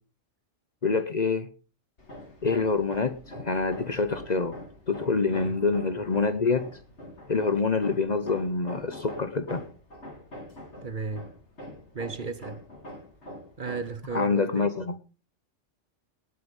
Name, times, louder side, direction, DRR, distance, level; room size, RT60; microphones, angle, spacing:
voice 1, 0.8-1.5 2.4-4.5 4.9-6.7 7.3-9.6 14.1-15.0, left 4 dB, 40° left, 0.9 m, -26 dB
Hammer, 2.0-14.1, left 1 dB, 65° left, 3.7 m, -44 dB
voice 2, 10.8-11.3 11.9-12.6 13.6-14.7, right 4 dB, 45° right, 1.1 m, -34 dB
19.0 x 7.6 x 5.4 m
omnidirectional pair, 1.2 m